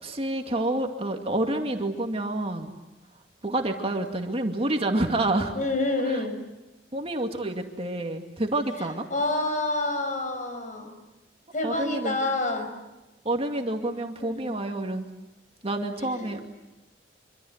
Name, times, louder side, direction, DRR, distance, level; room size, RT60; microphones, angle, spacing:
voice 1, 0.0-2.7 3.4-5.5 6.1-6.2 6.9-9.1 11.6-12.2 13.2-15.1 15.6-16.5, right 1 dB, 35° right, 3 dB, 2.4 m, -28 dB
voice 2, 5.5-6.4 9.1-11.0 11.5-12.8 14.2-14.5 16.0-16.4, left 2 dB, 45° left, 7 dB, 5.5 m, -28 dB
26.0 x 26.0 x 8.1 m, 1.0 s
head